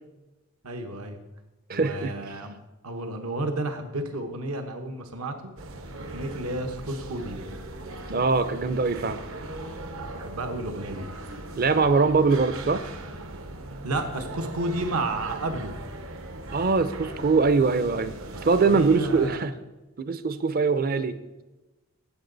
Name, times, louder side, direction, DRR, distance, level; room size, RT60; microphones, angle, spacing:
voice 1, 0.6-1.2 1.7-2.5 2.8-5.4 6.0-7.4 10.0-11.0 13.8-15.7 18.6-19.4, right 2 dB, 80° right, 6 dB, 1.2 m, -31 dB
voice 2, 1.7-2.1 8.1-9.2 11.6-12.8 16.5-18.1 18.4-19.5 20.0-21.2, right 4 dB, 40° right, 13 dB, 0.6 m, -22 dB
sound 1, 5.6-19.3, right 2 dB, 65° right, 0.9 m, -39 dB
16.0 x 6.9 x 4.0 m, 1.1 s
head